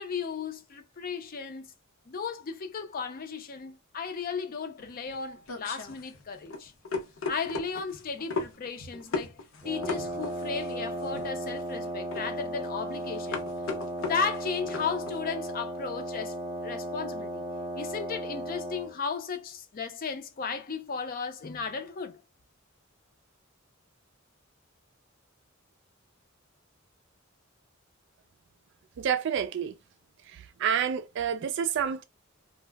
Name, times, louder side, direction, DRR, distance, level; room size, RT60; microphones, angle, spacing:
voice 1, 0.0-1.7 2.1-6.7 7.3-9.3 9.6-13.4 14.0-17.4 17.7-22.2, left 5 dB, 45° left, 0.5 m, -35 dB
sound 1, 4.8-15.2, left 4 dB, 80° left, 0.7 m, -37 dB
Wind instrument woodwind instrument, 9.6-19.0, equal, 25° right, 0.7 m, -35 dB
voice 2, 29.0-29.7 30.3-32.0, right 8 dB, 60° right, 0.3 m, -29 dB
2.2 x 2.0 x 3.3 m
head